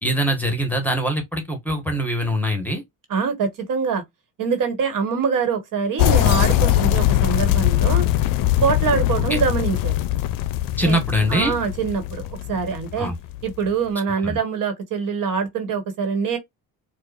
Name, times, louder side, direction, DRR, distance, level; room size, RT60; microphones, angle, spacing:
voice 1, 0.0-2.8 9.3-9.4 10.8-11.5 13.0-13.2 14.2-14.4, equal, 5° left, 1.3 m, -23 dB
voice 2, 3.1-4.0 4.4-8.0 8.6-9.9 10.8-11.0 11.3-13.1 13.4-16.4, right 6 dB, 60° right, 1.4 m, -24 dB
sound 1, 6.0-13.7, left 14 dB, 60° left, 0.5 m, -21 dB
4.6 x 2.4 x 2.5 m
cardioid pair, 95°, 37 cm